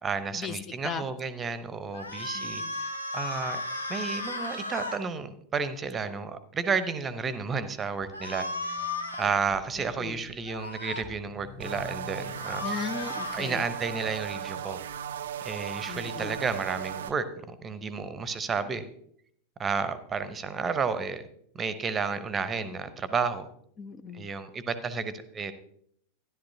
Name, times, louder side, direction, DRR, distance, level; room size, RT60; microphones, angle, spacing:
voice 1, 0.0-3.6 3.9-8.5 9.2-12.6 13.3-14.8 15.4-18.8 19.6-21.2 21.5-23.5 24.1-25.5, right 5 dB, 20° right, 12 dB, 0.8 m, -32 dB
sound 1, 1.9-5.0 8.1-9.3 10.5-11.0 12.2-13.4, left 2 dB, 80° left, 1.2 m, -35 dB
voice 2, 2.3-2.7 9.8-10.2 12.6-13.6 15.9-16.4 23.8-24.3, left 6 dB, 25° left, 11 dB, 0.5 m, -37 dB
sound 2, 8.0-14.0, left 6 dB, 50° left, 2.9 m, -50 dB
sound 3, 11.6-17.1, right 9 dB, 60° right, 0.4 m, -37 dB
13.0 x 11.0 x 2.8 m, 0.68 s
figure-of-eight pair, 90°, 0 cm